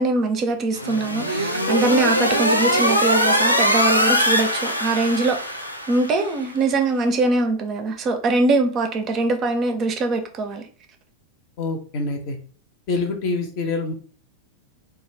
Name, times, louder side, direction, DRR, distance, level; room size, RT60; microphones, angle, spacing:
voice 1, 0.0-10.6, right 3 dB, 30° right, 0.4 m, -22 dB
sound 1, 0.7-6.3, equal, 90° left, 0.3 m, -21 dB
voice 2, 11.6-12.4 12.9-13.9, left 3 dB, 45° left, 0.6 m, -25 dB
2.3 x 2.3 x 3.2 m
figure-of-eight pair, 90°, 0 cm